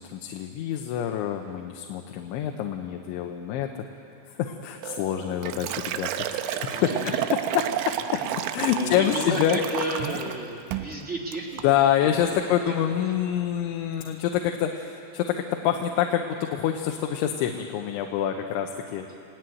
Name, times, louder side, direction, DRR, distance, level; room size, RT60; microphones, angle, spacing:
voice 1, 0.0-3.8 4.3-7.1 7.5-8.0 8.5-9.6 11.6-19.1, left 10 dB, 85° left, 4 dB, 3.3 m, -26 dB
Liquid, 4.8-10.4 10.7-11.0 11.3-11.7, right 11 dB, 85° right, 3.3 m, -31 dB
voice 2, 6.4-7.2 8.7-12.7 19.1-19.2, right 1 dB, 30° right, 0 dB, 1.3 m, -33 dB
28.5 x 17.0 x 9.3 m, 2.7 s
omnidirectional pair, 5.4 m